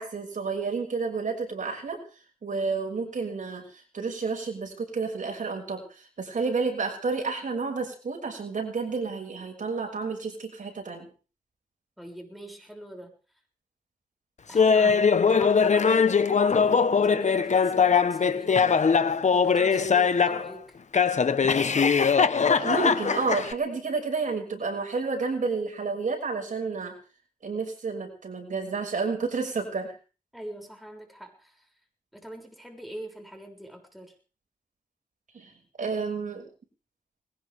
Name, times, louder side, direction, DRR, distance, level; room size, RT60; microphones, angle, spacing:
voice 1, 0.0-2.0 2.4-3.7 3.9-11.1 14.8-15.0 22.6-27.0 27.4-30.0 35.3-35.5 35.8-36.5, right 4 dB, 60° right, 2 dB, 6.1 m, -30 dB
voice 2, 12.0-13.1 14.5-20.6 30.3-31.6 32.1-34.1, right 1 dB, ahead, 3 dB, 6.8 m, -43 dB
Laughter, 14.6-20.5 20.9-23.5, left 6 dB, 50° left, 1.3 m, -21 dB
21.0 x 19.0 x 3.6 m, 0.37 s
cardioid pair, 80°, 15 cm